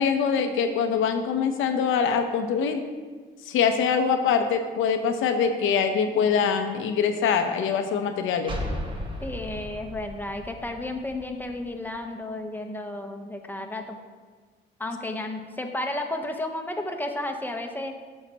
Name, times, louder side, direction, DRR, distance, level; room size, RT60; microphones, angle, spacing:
voice 1, 0.0-2.8 3.4-8.6, left 6 dB, 85° left, 7 dB, 0.8 m, -24 dB
sound 1, 8.5-12.0, equal, 25° right, 1.3 m, -36 dB
voice 2, 9.2-14.0 14.8-18.0, left 1 dB, 10° left, 4 dB, 1.0 m, -32 dB
14.5 x 5.7 x 3.0 m, 1.5 s
cardioid pair, 90°, 20 cm